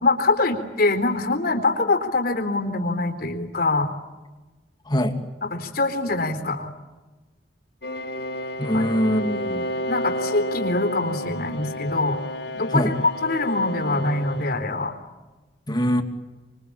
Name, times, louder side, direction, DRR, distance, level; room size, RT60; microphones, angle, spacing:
voice 1, 0.0-3.9 5.4-6.7 8.7-8.9 9.9-12.2 12.6-12.9 13.2-14.9, left 2 dB, 60° left, 6 dB, 4.0 m, -24 dB
voice 2, 4.9-5.2 8.6-9.7 12.7-12.9 15.7-16.0, equal, 25° left, 5 dB, 2.6 m, -22 dB
sound 1, 7.8-14.5, equal, 85° left, 4.2 m, -31 dB
27.0 x 23.5 x 8.7 m, 1.2 s
head